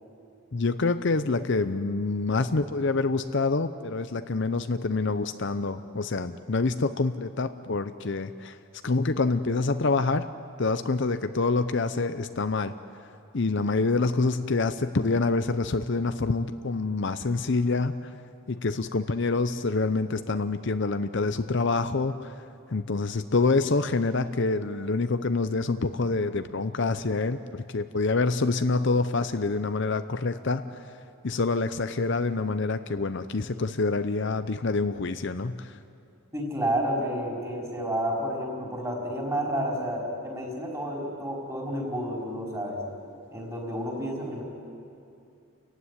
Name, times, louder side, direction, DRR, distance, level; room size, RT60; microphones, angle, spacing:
voice 1, 0.5-8.6 8.8-10.3 10.6-12.7 13.3-18.1 18.5-30.8 31.2-35.8, left 3 dB, 55° left, 10 dB, 0.7 m, -26 dB
voice 2, 36.3-42.8 43.3-44.4, equal, 15° right, -2 dB, 4.8 m, -30 dB
29.0 x 15.5 x 9.8 m, 2.5 s
head